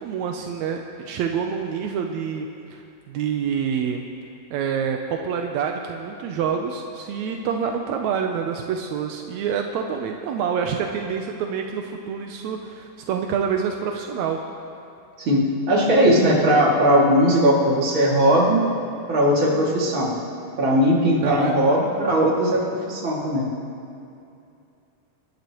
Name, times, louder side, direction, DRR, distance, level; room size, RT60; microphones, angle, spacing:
voice 1, 0.0-4.1 4.5-14.4 21.2-21.6, right 7 dB, 80° right, 3 dB, 1.6 m, -27 dB
voice 2, 15.2-18.7 19.1-20.1 20.6-23.5, equal, 35° right, -4 dB, 2.7 m, -19 dB
26.5 x 12.5 x 3.0 m, 2.6 s
omnidirectional pair, 4.1 m